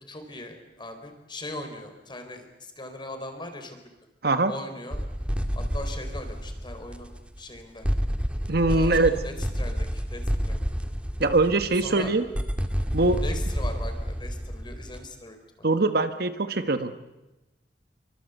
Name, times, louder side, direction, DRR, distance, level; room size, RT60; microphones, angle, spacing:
voice 1, 0.1-3.9 4.4-5.0 5.5-7.9 8.6-10.7 11.8-12.1 13.2-15.4 15.7-15.8, left 1 dB, 25° left, 6 dB, 4.3 m, -40 dB
sound 1, 4.9-7.6 7.8-15.1, equal, 5° right, 1.9 m, -29 dB
voice 2, 8.5-9.2 11.2-12.2 12.9-13.2 15.6-17.0, right 2 dB, 60° right, 9 dB, 1.4 m, -22 dB
27.5 x 24.0 x 8.3 m, 1.0 s
head